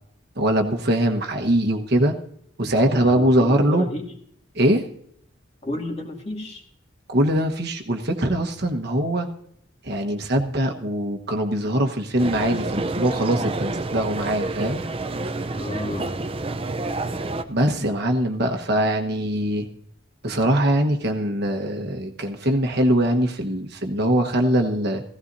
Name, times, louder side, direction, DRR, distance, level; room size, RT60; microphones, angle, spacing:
voice 1, 0.3-2.2 2.6-3.8 4.5-4.8 7.1-9.3 9.8-14.8 17.5-19.7 20.2-25.0, right 1 dB, 55° right, 4 dB, 1.2 m, -22 dB
voice 2, 3.0-4.1 5.6-6.6 15.5-16.2, left 1 dB, 30° left, 1 dB, 2.2 m, -31 dB
sound 1, 12.2-17.4, right 2 dB, 30° right, 0.6 m, -28 dB
16.0 x 16.0 x 2.7 m, 0.66 s
head